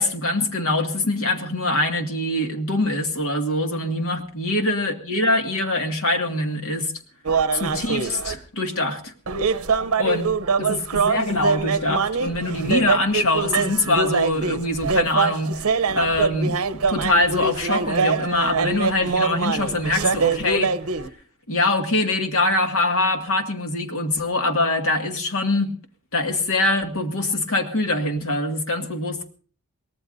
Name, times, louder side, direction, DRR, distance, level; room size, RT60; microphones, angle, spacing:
voice 1, 0.0-6.9 7.5-9.1 10.0-10.3 10.6-20.7 21.5-25.7 26.1-29.3, left 2 dB, 70° left, 4 dB, 2.0 m, -23 dB
sound 1, 7.3-8.4 9.3-21.1, right 5 dB, 80° right, 0.8 m, -24 dB
23.5 x 18.0 x 2.7 m, 0.41 s
head